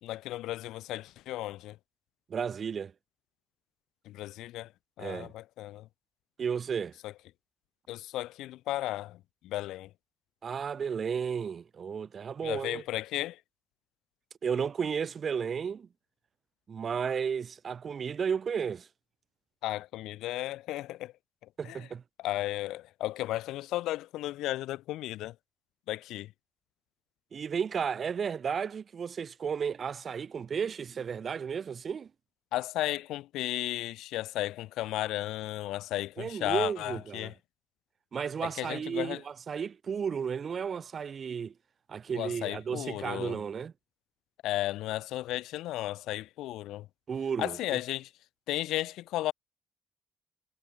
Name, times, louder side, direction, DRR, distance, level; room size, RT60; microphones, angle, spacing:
voice 1, 0.0-1.8 4.0-4.7 5.0-5.9 7.0-7.1 7.9-9.9 12.4-13.4 19.6-21.1 21.6-21.8 22.2-25.3 25.9-26.3 32.5-37.3 38.4-39.2 42.1-43.4 44.4-46.9 47.4-48.1 48.5-49.3, left 15 dB, 90° left, 1.0 m, -34 dB
voice 2, 2.3-2.9 5.0-5.3 6.4-6.9 10.4-12.8 14.4-15.9 16.7-18.9 21.6-22.0 27.3-32.1 36.2-37.3 38.1-41.5 41.9-43.7 47.1-47.8, right 6 dB, 50° right, 0.3 m, -33 dB
cardioid pair, 90°, 0 cm